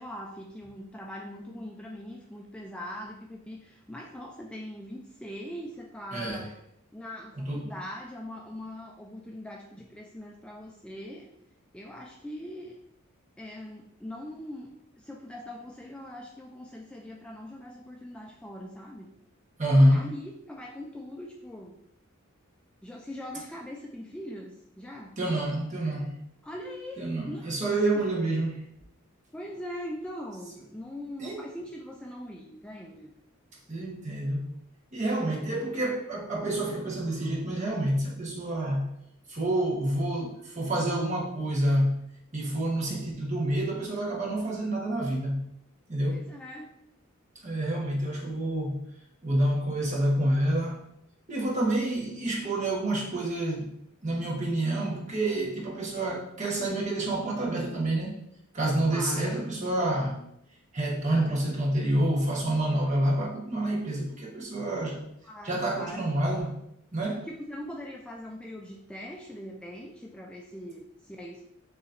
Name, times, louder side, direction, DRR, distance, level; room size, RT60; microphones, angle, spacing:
voice 1, 0.0-6.5 6.9-11.3 11.7-12.8 13.4-19.1 19.9-21.8 22.8-25.1 26.4-27.5 27.9-28.0 29.3-33.1 46.1-46.7 58.9-59.5 65.2-66.2 67.3-71.4, left 1 dB, 5° left, -1 dB, 0.3 m, -41 dB
voice 2, 6.1-6.5 7.4-7.7 19.6-20.0 25.2-26.1 27.0-28.6 31.2-31.4 33.7-34.5 34.9-38.9 39.3-42.0 42.3-45.4 45.9-46.3 47.4-48.9 49.2-50.8 51.3-53.7 54.0-58.1 58.5-60.2 60.7-65.1 65.4-66.6 66.9-67.3, right 1 dB, 35° right, -3 dB, 1.2 m, -28 dB
6.8 x 3.0 x 2.6 m, 0.75 s
head